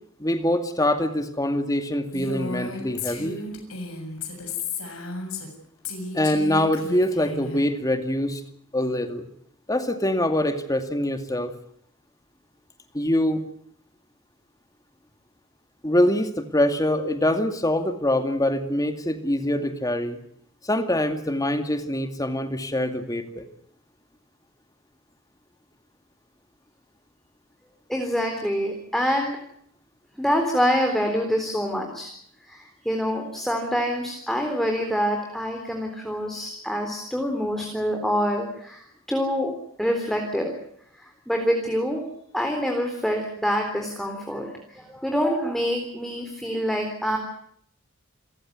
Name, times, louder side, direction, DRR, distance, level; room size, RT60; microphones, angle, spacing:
voice 1, 0.2-3.4 6.1-8.4 8.7-9.3 9.7-11.5 12.9-13.4 15.8-20.2 20.6-23.5, left 1 dB, 15° left, 8 dB, 2.3 m, -24 dB
Female speech woman speaking, 2.1-5.5 5.8-7.6, left 3 dB, 75° left, 7.1 m, -34 dB
voice 2, 27.9-29.4 30.2-32.1 32.5-38.8 39.1-39.5 39.8-40.5 41.0-42.0 42.3-47.2, equal, ahead, 2 dB, 3.8 m, -26 dB
28.5 x 15.5 x 9.6 m, 0.69 s
head